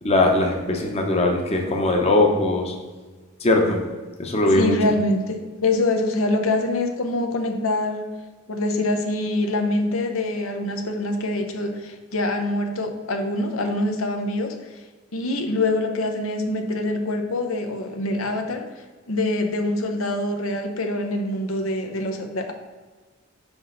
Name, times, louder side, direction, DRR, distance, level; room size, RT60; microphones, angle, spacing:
voice 1, 0.0-2.7 3.4-3.8 4.2-4.8, left 2 dB, 30° left, 2 dB, 0.8 m, -20 dB
voice 2, 4.6-8.1 8.5-14.8 15.1-18.6 19.1-22.5, left 2 dB, 85° left, 5 dB, 0.8 m, -25 dB
6.2 x 5.1 x 3.9 m, 1.3 s
head